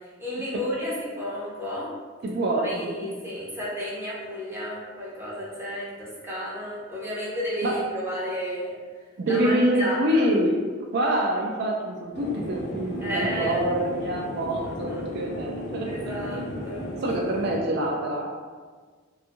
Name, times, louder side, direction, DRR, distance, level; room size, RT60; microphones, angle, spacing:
voice 1, 0.0-1.9 2.6-8.8 9.3-10.3 13.0-13.6 14.6-15.2 15.8-16.9, equal, 10° right, -7 dB, 0.6 m, -32 dB
voice 2, 2.2-3.2 7.6-7.8 9.2-10.6 10.9-15.9 16.3-16.4 17.0-18.4, right 1 dB, 55° right, -1 dB, 0.3 m, -26 dB
sound 1, 12.1-17.6, equal, 55° left, 0.4 m, -34 dB
2.5 x 2.3 x 2.8 m, 1.5 s
head